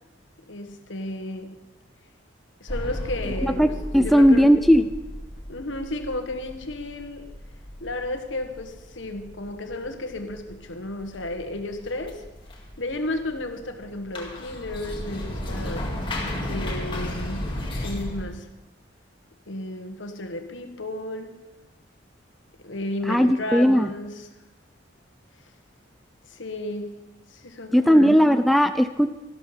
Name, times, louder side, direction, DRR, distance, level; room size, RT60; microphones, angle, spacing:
voice 1, 0.5-1.6 2.6-4.5 5.5-7.3 7.8-12.2 12.8-16.0 16.5-17.5 17.8-18.5 19.5-21.4 22.6-24.3 26.3-26.9 27.3-28.2, left 1 dB, 70° left, 6 dB, 1.5 m, -33 dB
sound 1, 2.7-18.3, left 1 dB, 25° left, 2.0 m, -35 dB
voice 2, 3.4-4.8 23.1-23.9 27.7-29.1, equal, ahead, 8 dB, 0.3 m, -17 dB
13.0 x 12.5 x 5.8 m, 1.1 s
head